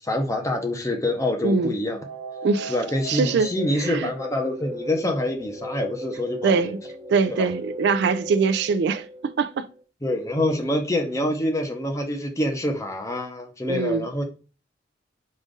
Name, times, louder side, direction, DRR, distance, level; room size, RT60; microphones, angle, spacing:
voice 1, 0.0-2.0 2.7-6.7 7.3-7.5 10.0-14.2, left 1 dB, 15° left, 0.7 m, -26 dB
voice 2, 1.4-1.7 2.4-2.8 3.1-3.5 3.8-4.1 6.4-6.8 7.1-9.7 13.7-14.1, right 5 dB, 60° right, 0.3 m, -23 dB
sound 1, 1.9-9.8, equal, 30° right, 0.8 m, -37 dB
5.1 x 2.5 x 3.7 m
head